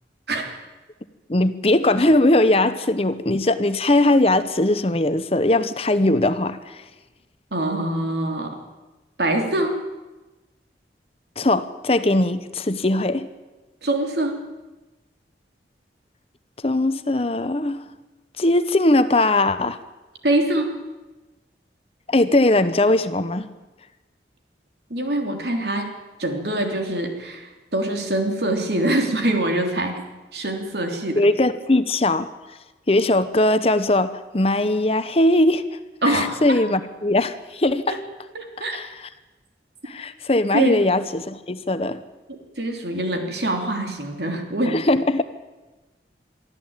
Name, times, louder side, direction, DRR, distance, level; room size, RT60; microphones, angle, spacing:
voice 1, 1.3-6.8 11.4-13.3 16.6-17.8 18.4-19.8 22.1-23.5 31.2-32.3 32.9-35.6 36.1-38.0 38.7-38.9 39.8-42.0 44.7-45.2, left 2 dB, 35° left, 12 dB, 0.9 m, -20 dB
voice 2, 7.5-8.6 9.2-9.8 13.8-14.4 20.2-20.7 24.9-25.9 26.2-30.0 30.3-31.2 36.0-36.6 38.3-38.8 40.5-40.8 42.3-44.8, right 1 dB, 70° right, 4 dB, 3.3 m, -24 dB
23.5 x 13.5 x 9.0 m, 1.1 s
head